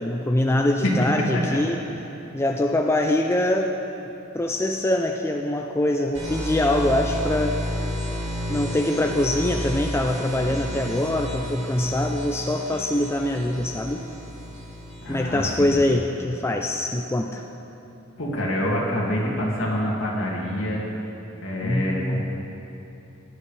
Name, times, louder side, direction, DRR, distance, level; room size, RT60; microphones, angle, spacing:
voice 1, 0.0-1.8 2.3-3.8 4.3-7.7 8.5-14.0 15.1-17.4 21.6-22.2, left 1 dB, 10° left, 2 dB, 0.4 m, -23 dB
sound 1, 6.1-15.8, equal, 65° right, 3.1 m, -31 dB
voice 2, 15.0-15.8 18.2-20.8 21.4-22.2, equal, 65° left, -4 dB, 2.4 m, -26 dB
16.5 x 10.5 x 3.3 m, 2.9 s
head